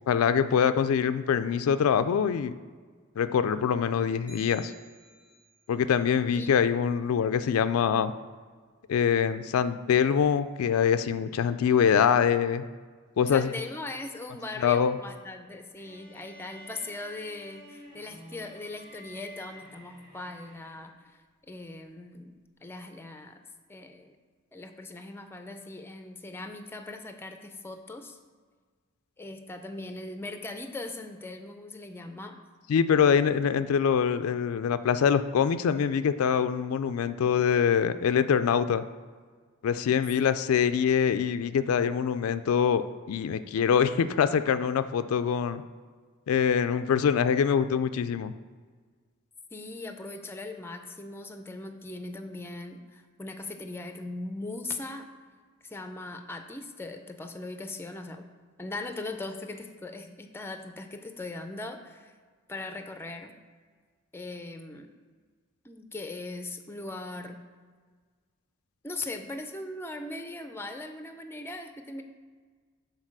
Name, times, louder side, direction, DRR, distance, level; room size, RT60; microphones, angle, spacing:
voice 1, 0.1-2.5 3.2-4.7 5.7-8.1 8.9-12.6 13.2-13.5 14.6-15.0 32.7-38.8 39.6-45.6 46.3-48.3, left 7 dB, 85° left, 11 dB, 0.3 m, -24 dB
sound 1, 4.3-5.7, left 2 dB, 60° right, 2.0 m, -51 dB
voice 2, 6.3-6.6 13.3-21.2 21.5-22.3 22.6-23.4 23.7-24.2 24.5-28.2 29.2-32.4 49.5-55.1 55.6-58.3 58.6-62.1 62.5-63.3 64.1-64.9 65.6-67.4 68.8-72.0, left 2 dB, 10° left, 6 dB, 0.5 m, -39 dB
sound 2, 15.8-21.0, equal, 45° right, 1.3 m, -50 dB
6.5 x 4.0 x 6.0 m, 1.5 s
head